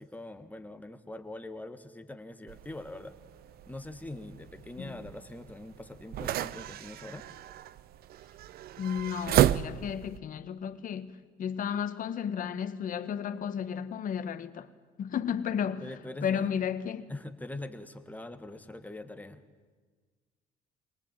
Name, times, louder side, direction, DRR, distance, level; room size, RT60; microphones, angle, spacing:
voice 1, 0.0-3.2 3.7-7.3 15.8-16.6 17.1-19.4, left 2 dB, 10° left, 1.7 m, -43 dB
sound 1, 2.5-10.2, right 12 dB, 65° right, 0.7 m, -33 dB
voice 2, 8.8-14.7 15.0-15.9 16.2-17.1, left 8 dB, 55° left, 1.5 m, -33 dB
24.0 x 19.5 x 9.1 m
cardioid pair, 110°, 17 cm